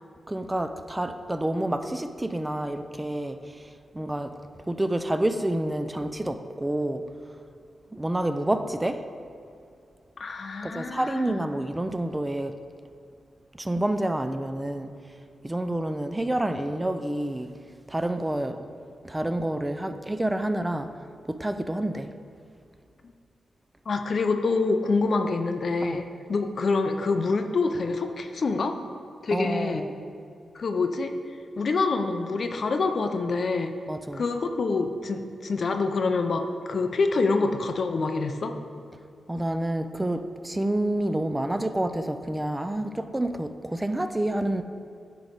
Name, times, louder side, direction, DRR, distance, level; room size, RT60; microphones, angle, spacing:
voice 1, 0.3-4.3 4.7-7.0 7.9-9.0 10.6-12.5 13.6-14.9 15.4-17.5 17.9-18.6 19.0-20.9 21.3-22.1 25.8-26.0 29.3-29.9 33.9-34.2 39.3-44.6, right 1 dB, 15° right, 8 dB, 0.4 m, -28 dB
voice 2, 10.2-11.4 23.9-26.0 26.3-28.8 29.2-29.8 30.5-31.1 31.6-33.7 34.1-38.6, left 3 dB, 60° left, 6 dB, 0.5 m, -26 dB
9.2 x 3.1 x 5.1 m, 2.4 s
cardioid pair, 55°, 0 cm